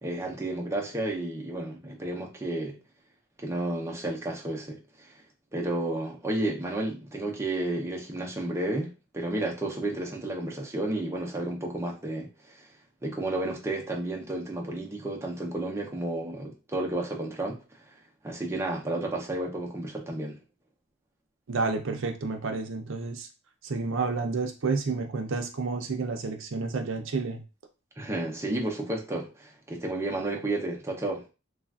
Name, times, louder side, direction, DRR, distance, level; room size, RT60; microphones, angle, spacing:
voice 1, 0.0-2.8 3.4-5.1 5.5-12.6 13.0-17.6 18.2-20.4 28.0-31.2, right 1 dB, 15° right, -1 dB, 0.6 m, -32 dB
voice 2, 21.5-23.3 23.6-27.4, right 4 dB, 60° right, 4 dB, 0.5 m, -30 dB
3.2 x 2.4 x 2.3 m, 0.31 s
head